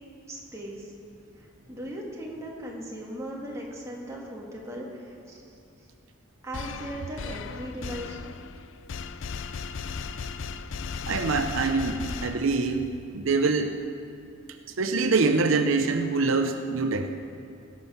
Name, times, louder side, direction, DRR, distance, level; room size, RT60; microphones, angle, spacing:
voice 1, 0.3-0.9 1.4-5.5 6.4-8.4, right 1 dB, 15° right, -3 dB, 1.9 m, -38 dB
sound 1, 6.5-12.9, left 5 dB, 65° left, 0.4 m, -36 dB
voice 2, 11.1-13.8 14.8-17.1, right 3 dB, 75° right, 7 dB, 0.6 m, -25 dB
17.0 x 7.6 x 5.7 m, 2.6 s
head